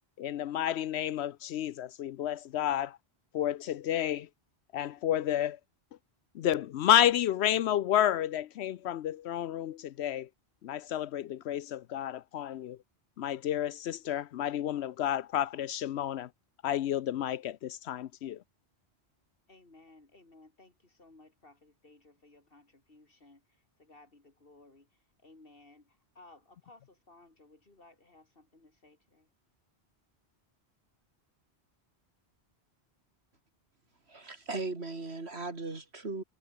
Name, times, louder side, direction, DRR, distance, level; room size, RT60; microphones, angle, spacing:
voice 1, 0.2-3.0 3.3-4.3 4.7-5.6 6.3-10.3 10.6-12.8 13.2-16.3 16.6-18.4, left 11 dB, 80° left, 0.9 m, -30 dB
voice 2, 19.5-24.9 25.2-29.3, left 2 dB, 55° left, 3.5 m, -59 dB
voice 3, 34.1-36.2, right 3 dB, 75° right, 3.2 m, -37 dB
omnidirectional pair, 1.1 m